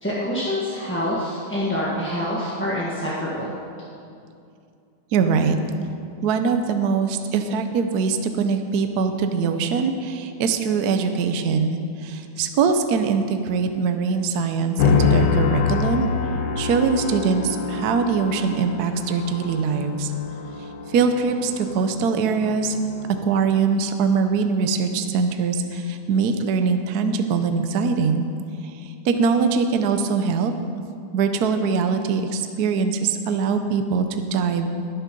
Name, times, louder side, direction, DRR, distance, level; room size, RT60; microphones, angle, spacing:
voice 1, 0.0-3.6, left 1 dB, 5° left, -7 dB, 1.2 m, -26 dB
voice 2, 5.1-5.6 6.2-16.1 16.6-20.1 20.9-22.8 23.2-28.2 28.6-30.5 31.1-34.8, right 5 dB, 65° right, 7 dB, 1.1 m, -22 dB
sound 1, 14.8-23.2, left 5 dB, 70° left, 1.4 m, -25 dB
20.5 x 7.3 x 5.2 m, 2.5 s
omnidirectional pair, 2.2 m